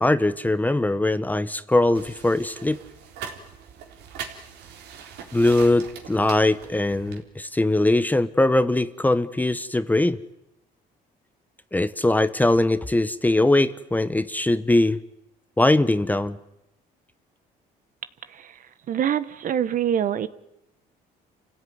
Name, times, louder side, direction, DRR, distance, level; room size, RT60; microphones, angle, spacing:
voice 1, 0.0-2.8 5.3-10.2 11.7-15.0 15.6-16.4, left 2 dB, 10° left, 14 dB, 0.9 m, -21 dB
sound 1, 1.9-7.2, right 7 dB, 85° right, 3.9 m, -41 dB
voice 2, 18.9-20.3, right 9 dB, 50° right, 14 dB, 1.3 m, -24 dB
29.0 x 16.0 x 9.5 m, 0.86 s
cardioid pair, 110°, 17 cm